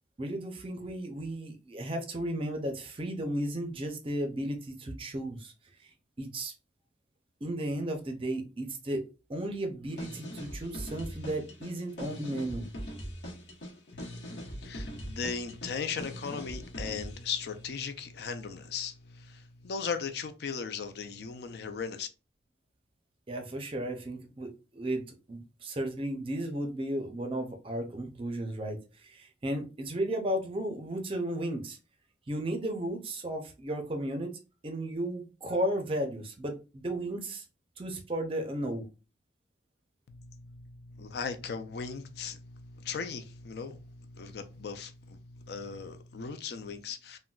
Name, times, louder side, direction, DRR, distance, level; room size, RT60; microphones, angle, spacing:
voice 1, 0.2-5.5 5.8-6.5 7.4-12.7 23.3-31.8 32.3-37.4 37.8-38.9, right 1 dB, 30° right, 0.5 m, -34 dB
sound 1, 9.9-17.3, equal, 75° left, 1.0 m, -41 dB
voice 2, 13.9-22.1 40.1-47.2, left 5 dB, 60° left, 0.4 m, -38 dB
3.8 x 2.1 x 2.3 m
head